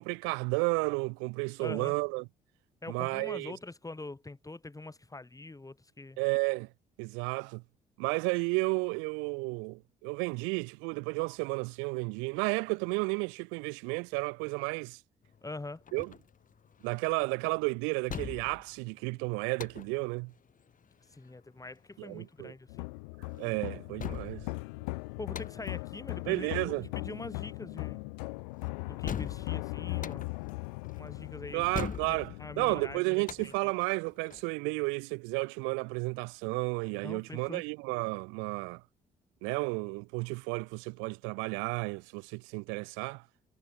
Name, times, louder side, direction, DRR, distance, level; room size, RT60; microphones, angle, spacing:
voice 1, 0.0-2.2 2.9-3.5 6.2-6.7 7.0-7.6 8.0-15.0 15.9-16.1 16.8-20.3 22.0-22.5 23.3-24.5 26.3-26.9 31.5-32.3 32.6-38.8 39.4-43.2, right 31 dB, 70° right, 0.6 m, -32 dB
voice 2, 1.6-1.9 2.8-6.2 15.4-15.8 21.1-22.9 25.2-28.1 28.8-30.3 31.0-31.7 32.0-33.7 37.0-37.6, left 2 dB, 15° left, 2.4 m, -44 dB
sound 1, 15.2-34.5, left 7 dB, 40° left, 1.7 m, -44 dB
sound 2, 22.7-33.0, left 29 dB, 75° left, 2.1 m, -39 dB
hypercardioid pair, 50°, 20 cm